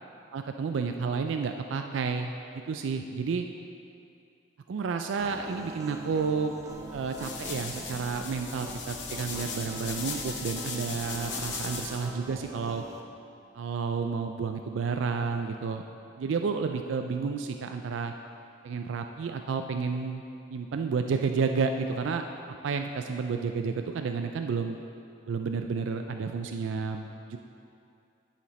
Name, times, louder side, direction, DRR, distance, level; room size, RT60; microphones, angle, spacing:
voice 1, 0.3-2.3 2.7-3.5 4.7-6.5 6.9-12.8 13.5-15.8 16.2-18.1 18.6-20.2 20.5-22.2 22.6-24.8 25.3-27.4, right 5 dB, 80° right, 5 dB, 0.4 m, -31 dB
sound 1, 5.2-13.0, right 1 dB, 15° right, 0.5 m, -43 dB
sound 2, 6.7-12.1, left 5 dB, 65° left, 0.8 m, -38 dB
9.8 x 5.9 x 4.2 m, 2.6 s
head